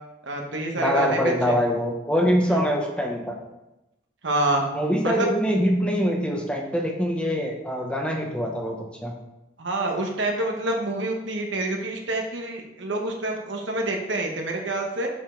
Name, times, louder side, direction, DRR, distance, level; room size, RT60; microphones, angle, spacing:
voice 1, 0.3-1.5 2.5-2.7 4.2-4.6 5.0-5.3 9.6-15.1, right 2 dB, 75° right, 1 dB, 1.2 m, -27 dB
voice 2, 0.8-3.4 4.7-9.1, equal, 5° left, 1 dB, 0.9 m, -24 dB
7.5 x 5.2 x 3.8 m, 0.93 s
head